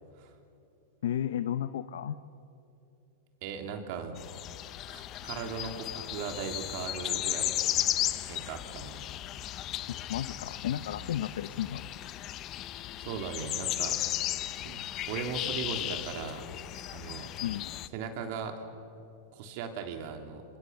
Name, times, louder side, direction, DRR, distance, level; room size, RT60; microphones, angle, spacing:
voice 1, 1.0-2.2 9.9-11.8 17.4-17.7, left 10 dB, 75° left, 12 dB, 0.8 m, -33 dB
voice 2, 3.4-4.2 4.9-8.0 8.3-9.0 13.0-14.0 14.6-14.8 15.1-16.5 16.9-17.3 17.9-18.6 19.3-20.4, right 6 dB, 55° right, 5 dB, 3.4 m, -38 dB
sound 1, 4.2-17.9, left 13 dB, 35° left, 0.9 m, -35 dB
26.5 x 26.0 x 7.1 m, 2.7 s
hypercardioid pair, 130°, 0 cm